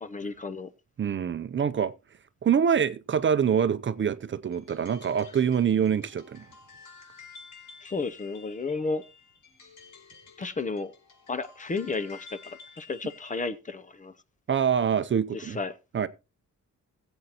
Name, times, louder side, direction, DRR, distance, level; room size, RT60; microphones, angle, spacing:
voice 1, 0.0-0.7 7.8-9.0 10.4-10.9 11.3-14.1 15.3-15.8, left 3 dB, 25° left, 0.6 m, -33 dB
voice 2, 1.0-1.9 2.4-6.4 14.5-15.6 15.9-16.1, right 7 dB, 40° right, 0.6 m, -25 dB
sound 1, 4.5-13.5, left 5 dB, 70° left, 5.2 m, -51 dB
20.0 x 8.0 x 2.9 m
wide cardioid pair, 165°, 32 cm